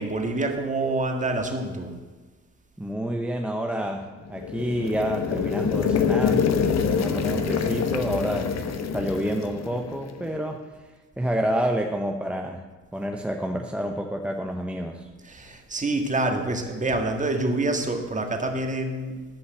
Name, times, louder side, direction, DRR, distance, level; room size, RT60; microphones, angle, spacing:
voice 1, 0.0-1.9 15.2-19.2, right 2 dB, 25° right, 4 dB, 1.7 m, -27 dB
voice 2, 2.8-6.5 6.9-10.9 11.2-12.6 12.9-15.1, right 1 dB, 5° right, 2 dB, 0.8 m, -29 dB
sound 1, 4.3-10.3, left 6 dB, 60° left, 1.1 m, -26 dB
12.0 x 5.5 x 7.8 m, 1.3 s
cardioid pair, 90°, 30 cm